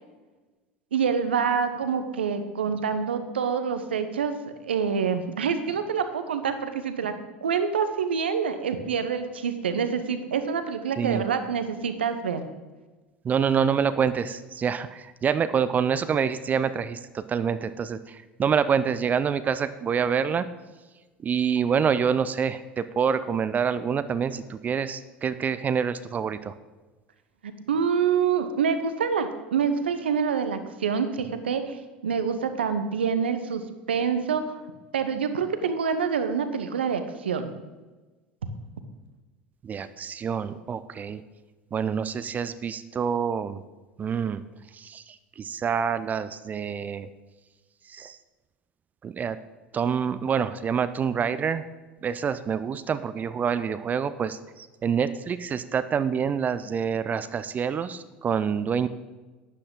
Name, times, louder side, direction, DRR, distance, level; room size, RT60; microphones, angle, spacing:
voice 1, 0.9-7.1 7.4-12.4 27.4-33.6 33.9-34.5 34.9-37.5, right 6 dB, 75° right, 9 dB, 1.0 m, -26 dB
voice 2, 13.2-20.5 21.2-26.5 39.6-41.2 41.7-43.6 44.0-44.4 44.7-47.1 47.9-48.2 49.0-49.4 49.7-51.6 52.0-58.9, right 7 dB, 25° right, 13 dB, 0.5 m, -27 dB
12.0 x 10.0 x 3.8 m, 1.2 s
figure-of-eight pair, 70°, 6 cm